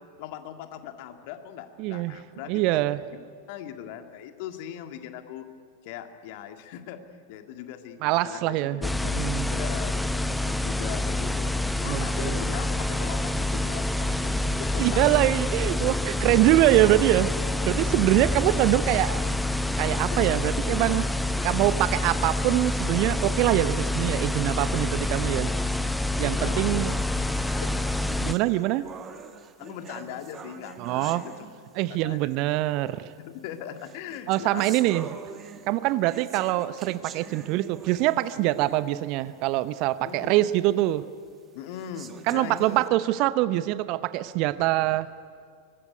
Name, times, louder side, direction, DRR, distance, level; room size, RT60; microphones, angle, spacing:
voice 1, 0.2-3.2 3.5-5.5 5.8-9.1 9.5-11.5 11.8-15.0 17.6-17.7 18.1-18.2 18.8-19.3 20.0-20.3 26.3-26.8 27.2-27.7 28.1-28.4 29.6-31.5 31.9-32.6 33.2-35.0 40.0-40.5 41.5-42.8, left 10 dB, 45° left, 6 dB, 2.0 m, -40 dB
voice 2, 1.8-2.2 2.5-3.0 8.0-8.8 9.1-9.5 11.8-12.4 14.8-19.3 19.8-21.1 21.4-25.5 26.2-27.0 28.2-28.8 30.8-31.2 31.8-33.1 34.3-35.1 35.7-41.0 42.3-45.1, right 16 dB, 40° right, 15 dB, 0.8 m, -24 dB
sound 1, 8.8-28.3, left 1 dB, 5° left, 0.8 m, -27 dB
sound 2, 26.9-32.0 32.9-33.0 33.8-39.0 39.5-39.6 40.1-40.2 40.9-41.0 41.7-42.9, right 7 dB, 25° right, 1.6 m, -44 dB
24.0 x 20.5 x 9.6 m, 2.1 s
figure-of-eight pair, 90°, 0 cm